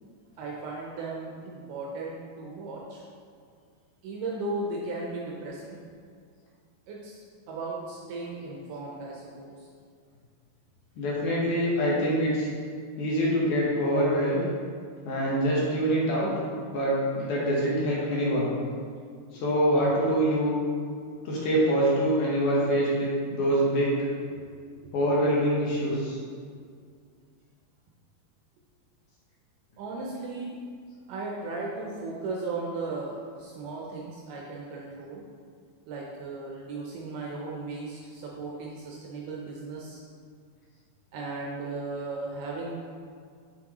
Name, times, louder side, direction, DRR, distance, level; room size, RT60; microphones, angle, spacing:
voice 1, 0.4-3.0 4.0-5.8 6.9-9.7 24.3-24.4 24.8-25.0 29.8-30.6 31.1-35.2 35.9-40.0 41.1-42.9, right 3 dB, 75° right, -3 dB, 2.0 m, -36 dB
voice 2, 11.0-12.5 13.0-14.4 15.1-16.3 16.7-18.5 19.3-20.5 21.3-23.9 24.9-26.2, equal, 70° left, -5 dB, 2.0 m, -25 dB
6.1 x 6.0 x 2.9 m, 2.1 s
omnidirectional pair, 4.4 m